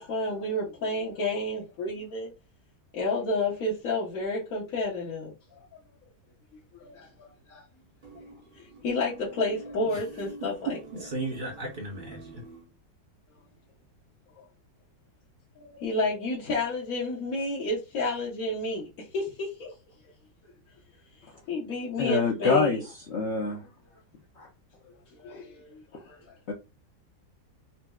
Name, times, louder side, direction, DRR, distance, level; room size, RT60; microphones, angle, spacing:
voice 1, 0.0-2.3 2.9-5.6 6.7-7.1 7.5-7.6 8.6-10.8 14.4-14.5 15.6-19.7 21.5-22.8 25.1-26.3, left 2 dB, 55° left, 1.2 m, -31 dB
voice 2, 8.0-8.3 8.7-8.8 10.2-12.6, right 3 dB, 50° right, 0.6 m, -36 dB
voice 3, 22.0-22.8 23.1-23.7 24.4-24.5 26.5-26.6, left 4 dB, 75° left, 0.6 m, -25 dB
4.1 x 2.3 x 2.2 m
omnidirectional pair, 1.9 m